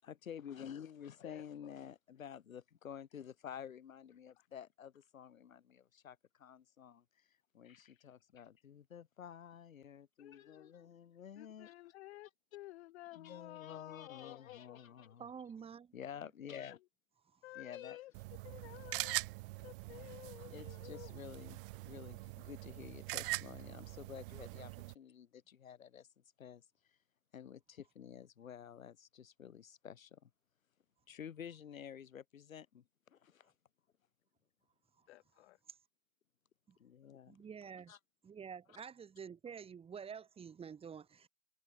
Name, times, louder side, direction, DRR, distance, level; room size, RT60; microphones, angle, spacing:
voice 1, 0.0-7.3 7.5-11.7 13.1-15.2 15.9-16.8 17.6-18.0 20.5-26.1 26.4-26.6 27.3-30.3 31.1-33.5 36.8-37.4 37.9-38.0, left 8 dB, 65° left, 7.0 m, -51 dB
voice 2, 1.2-1.7 4.4-4.5 10.2-10.7 11.4-15.1 17.4-18.1 18.4-19.2 19.6-21.1 35.1-35.6, left 16 dB, 45° left, 3.2 m, -53 dB
voice 3, 15.2-15.9 36.7-36.8 37.3-37.9 38.2-41.3, right 7 dB, 15° right, 2.4 m, -49 dB
sound 1, 18.1-24.9, right 23 dB, 40° right, 1.6 m, -43 dB
figure-of-eight pair, 110°, 43 cm